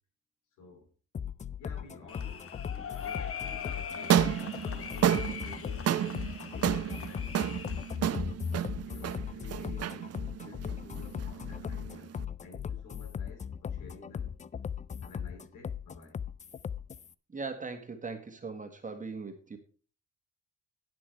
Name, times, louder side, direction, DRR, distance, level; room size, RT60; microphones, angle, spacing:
voice 1, 0.6-0.9 1.6-4.3 4.6-7.4 8.0-8.3 8.8-14.5 15.0-16.2, left 2 dB, 90° left, 3.1 m, -52 dB
sound 1, 1.1-17.1, left 7 dB, 25° left, 0.4 m, -38 dB
sound 2, 2.1-8.0, left 7 dB, 50° left, 1.3 m, -42 dB
sound 3, 4.0-12.2, right 10 dB, 55° right, 0.7 m, -31 dB
voice 2, 17.3-19.6, right 4 dB, 25° right, 1.6 m, -39 dB
17.5 x 6.1 x 3.3 m
cardioid pair, 90°, 30 cm